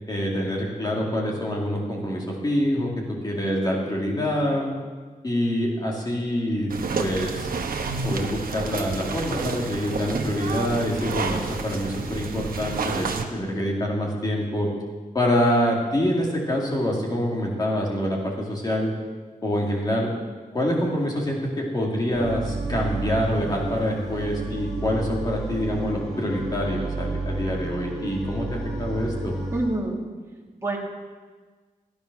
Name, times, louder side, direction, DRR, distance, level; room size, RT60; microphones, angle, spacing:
voice 1, 0.1-4.7 5.2-6.7 7.0-7.5 8.0-14.7 15.1-18.9 19.4-20.1 20.5-29.3, equal, 25° left, -3 dB, 2.4 m, -26 dB
sound 1, 6.7-13.2, right 4 dB, 80° right, 1.1 m, -30 dB
sound 2, 22.1-29.6, right 2 dB, 5° left, 4.4 m, -31 dB
voice 2, 29.5-30.0 30.6-30.8, right 2 dB, 20° right, -2 dB, 2.0 m, -26 dB
14.5 x 10.5 x 6.1 m, 1.4 s
wide cardioid pair, 180°, 15 cm